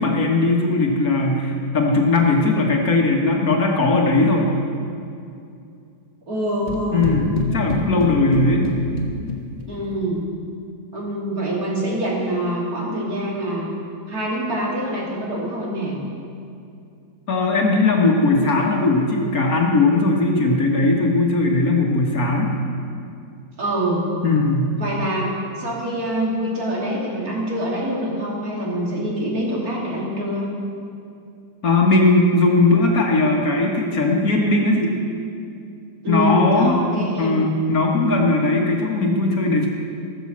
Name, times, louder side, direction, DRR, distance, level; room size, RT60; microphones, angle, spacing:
voice 1, 0.0-4.5 6.9-8.6 17.3-22.6 24.2-24.7 31.6-35.0 36.1-36.8 37.2-39.7, left 2 dB, 60° left, 0 dB, 1.9 m, -18 dB
voice 2, 6.3-7.1 9.7-10.2 10.9-13.7 14.1-16.0 23.6-24.0 24.7-25.3 25.6-30.5 36.0-37.4, right 1 dB, 60° right, -4 dB, 3.2 m, -25 dB
sound 1, 6.7-9.9, left 2 dB, 30° left, 1.6 m, -27 dB
17.0 x 7.2 x 7.4 m, 2.5 s
omnidirectional pair, 1.8 m